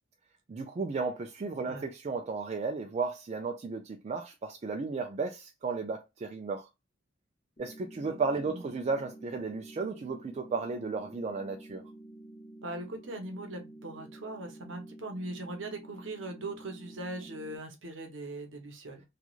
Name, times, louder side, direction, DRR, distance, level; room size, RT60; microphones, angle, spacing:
voice 1, 0.5-6.7 7.6-11.8, right 4 dB, 35° right, 0.3 m, -34 dB
sound 1, 7.6-17.6, right 1 dB, 35° left, 1.0 m, -49 dB
voice 2, 8.0-8.7 12.6-19.0, right 2 dB, 65° right, 0.8 m, -40 dB
3.0 x 2.3 x 2.3 m
head